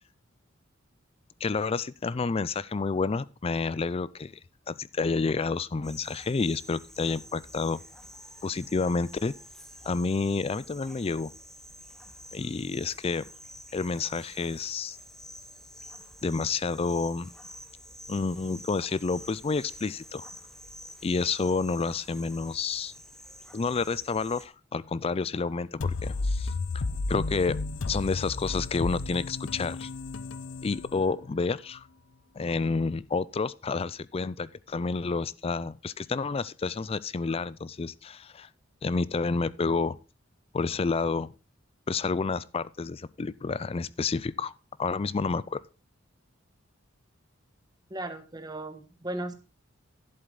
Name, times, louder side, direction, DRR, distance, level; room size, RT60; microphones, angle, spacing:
voice 1, 1.4-4.3 4.7-7.8 8.4-9.3 9.9-11.3 12.3-13.3 13.7-15.0 16.2-17.3 18.1-20.3 21.0-22.9 23.5-26.5 27.1-27.6 27.9-29.9 30.6-31.9 32.4-38.5 38.8-40.0 40.5-41.3 41.9-44.5 44.8-45.6, left 4 dB, 30° left, 0.4 m, -29 dB
sound 1, 5.8-24.5, equal, 5° left, 1.0 m, -48 dB
sound 2, 25.8-31.4, left 3 dB, 70° left, 0.6 m, -33 dB
voice 2, 47.9-49.3, right 1 dB, 20° right, 1.4 m, -36 dB
11.5 x 7.8 x 3.9 m
head